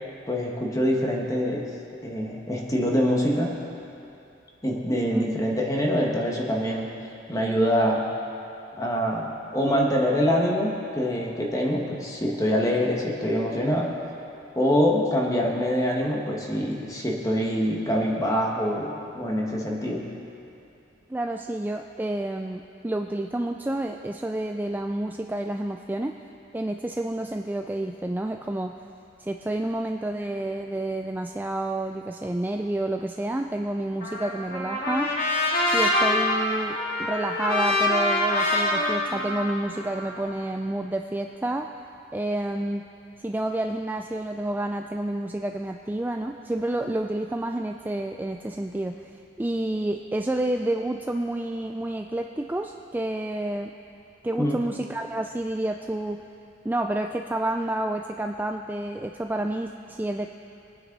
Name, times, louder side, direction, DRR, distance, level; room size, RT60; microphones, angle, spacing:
voice 1, 0.3-1.7 2.0-3.6 4.6-6.9 7.3-8.1 8.8-13.9 14.5-20.1 54.4-54.6, equal, 20° left, -1 dB, 1.7 m, -25 dB
voice 2, 21.1-26.2 26.5-28.8 29.2-35.1 35.7-41.7 42.1-42.9 43.2-53.7 54.2-56.2 56.6-60.3, right 1 dB, 10° right, 4 dB, 0.3 m, -29 dB
Trumpet, 34.0-40.3, left 1 dB, 50° left, 2.0 m, -25 dB
22.5 x 9.3 x 4.0 m, 2.7 s
head